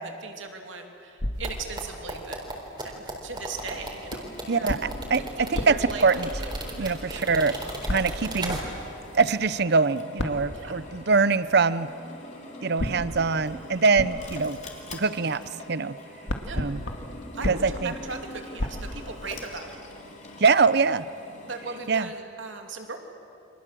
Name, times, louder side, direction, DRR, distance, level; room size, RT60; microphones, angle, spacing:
voice 1, 0.0-2.4 2.8-4.9 5.4-6.2 6.7-7.2 10.5-10.8 16.4-16.6 17.3-19.8 21.5-23.0, right 4 dB, 70° right, 4 dB, 2.9 m, -38 dB
sound 1, 1.2-2.4 4.1-7.0 7.8-8.7 10.2-11.3 12.8-15.6 15.9-19.6, left 1 dB, 65° left, 2.1 m, -35 dB
sound 2, 1.4-9.0 9.3-9.4, right 1 dB, 25° right, 4.0 m, -36 dB
Drill, 3.5-22.0, left 1 dB, 35° left, 3.2 m, -44 dB
voice 2, 4.5-6.3 6.8-7.6 7.9-8.6 9.1-11.9 12.6-14.6 14.9-15.4 15.7-16.0 16.5-16.8 17.4-17.9 20.4-21.0 21.9-22.1, right 4 dB, 55° right, 15 dB, 0.7 m, -23 dB
29.5 x 25.5 x 7.6 m, 2.6 s
head